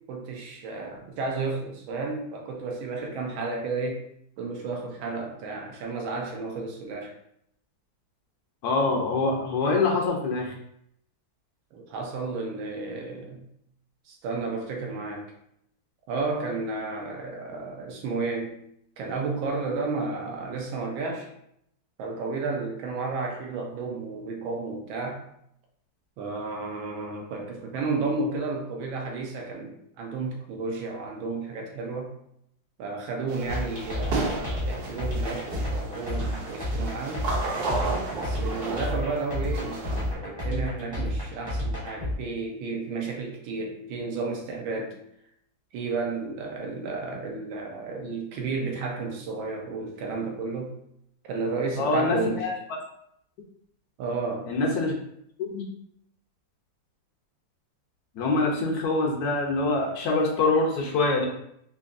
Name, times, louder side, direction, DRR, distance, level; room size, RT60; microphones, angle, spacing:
voice 1, 0.1-4.0 4.4-7.1 11.7-13.5 14.1-15.3 16.1-18.5 19.0-21.3 22.0-25.3 26.2-32.1 32.8-37.3 38.1-45.0 45.7-50.7 51.2-52.5 54.0-54.5, right 3 dB, 85° right, 1 dB, 1.5 m, -32 dB
voice 2, 8.6-10.5 51.8-52.5 54.5-54.9 55.4-55.6 58.2-61.3, left 3 dB, 70° left, 0 dB, 1.0 m, -25 dB
sound 1, 33.3-40.1, right 3 dB, 65° right, 1.0 m, -33 dB
sound 2, 33.5-42.1, left 1 dB, 25° right, 0.5 m, -30 dB
3.9 x 2.8 x 2.4 m, 0.73 s
omnidirectional pair, 2.1 m